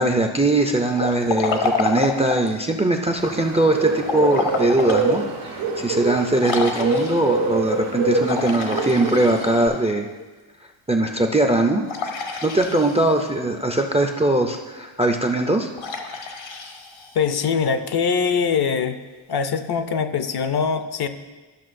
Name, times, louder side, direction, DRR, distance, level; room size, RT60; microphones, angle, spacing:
voice 1, 0.0-10.1 10.9-11.8 12.4-15.7, right 2 dB, 15° right, 4 dB, 0.3 m, -21 dB
Liquid, 0.9-2.6 4.0-5.1 5.6-5.7 6.4-7.4 8.2-9.8 11.9-13.2 15.8-17.4, left 4 dB, 70° left, 1.1 m, -28 dB
Bird, 3.2-9.7, right 3 dB, 90° right, 1.5 m, -26 dB
voice 2, 17.1-19.0 19.3-21.1, left 6 dB, 55° left, 10 dB, 0.5 m, -22 dB
12.5 x 5.9 x 2.5 m, 1.3 s
wide cardioid pair, 110°, 48 cm